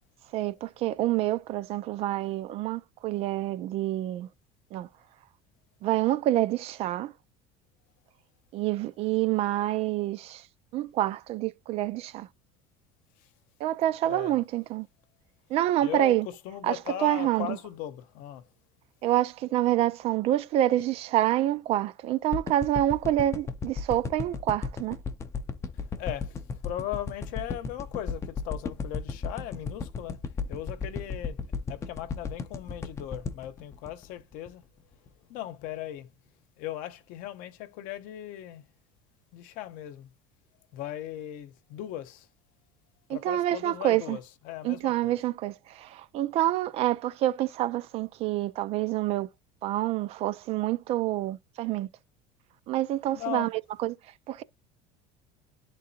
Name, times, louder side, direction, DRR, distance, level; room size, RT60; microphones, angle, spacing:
voice 1, 0.3-4.3 4.7-4.9 5.8-7.1 8.5-10.5 10.7-12.3 13.6-14.9 15.5-16.3 16.6-17.6 19.0-25.0 43.1-44.2 44.6-49.3 49.6-51.9 52.7-54.0 54.3-54.4, right 14 dB, 40° right, 0.4 m, -27 dB
voice 2, 14.0-14.3 15.8-18.4 25.7-30.2 30.5-31.4 31.7-34.6 35.3-36.1 36.6-38.6 39.3-40.1 40.7-42.3 43.1-45.2 53.1-53.5, left 12 dB, 60° left, 0.9 m, -38 dB
sound 1, 22.3-34.6 35.1-35.2, left 5 dB, 15° left, 0.5 m, -34 dB
11.0 x 3.8 x 2.7 m
cardioid pair, 165°, 16 cm